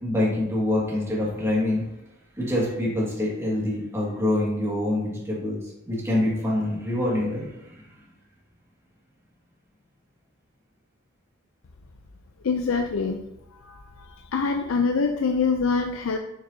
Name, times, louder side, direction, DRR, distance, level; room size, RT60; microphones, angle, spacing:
voice 1, 0.0-1.8 2.4-5.6 5.9-8.1, left 1 dB, 15° right, -5 dB, 1.9 m, -25 dB
voice 2, 12.4-13.2 13.6-13.7 14.3-16.2, left 4 dB, 85° left, 5 dB, 0.5 m, -24 dB
6.7 x 6.6 x 2.7 m, 0.84 s
head